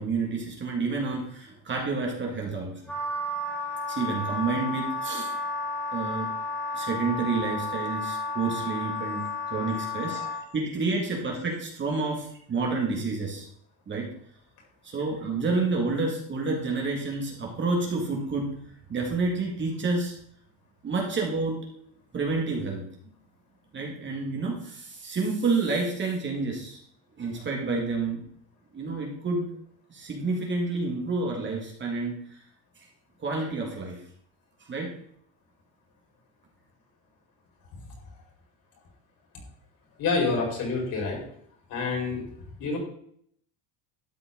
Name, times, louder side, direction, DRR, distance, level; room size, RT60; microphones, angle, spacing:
voice 1, 0.0-2.8 3.9-5.3 5.9-6.3 6.7-9.2 9.5-13.5 13.9-14.1 14.8-18.5 18.9-20.1 20.8-21.9 22.1-22.8 23.7-26.8 27.2-28.2 28.7-29.5 29.9-32.4 33.2-34.0 34.6-34.9, right 3 dB, 25° right, -1 dB, 2.4 m, -29 dB
Wind instrument woodwind instrument, 2.9-10.4, left 2 dB, 5° left, 3.1 m, -32 dB
voice 2, 40.0-41.2 41.7-42.2 42.6-42.8, left 4 dB, 50° left, 0 dB, 5.1 m, -27 dB
12.5 x 7.8 x 4.0 m, 0.65 s
cardioid pair, 150°, 45 cm